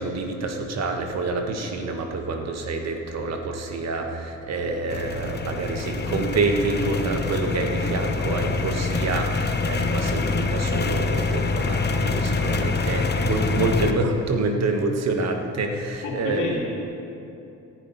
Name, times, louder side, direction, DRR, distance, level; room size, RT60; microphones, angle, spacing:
voice 1, 0.0-16.5, right 3 dB, 60° right, 4 dB, 1.6 m, -27 dB
sound 1, 4.9-13.9, left 3 dB, 35° left, 1.1 m, -25 dB
voice 2, 16.0-16.6, left 4 dB, 80° left, -4 dB, 3.5 m, -30 dB
17.5 x 11.0 x 4.2 m, 2.8 s
cardioid pair, 90°, 30 cm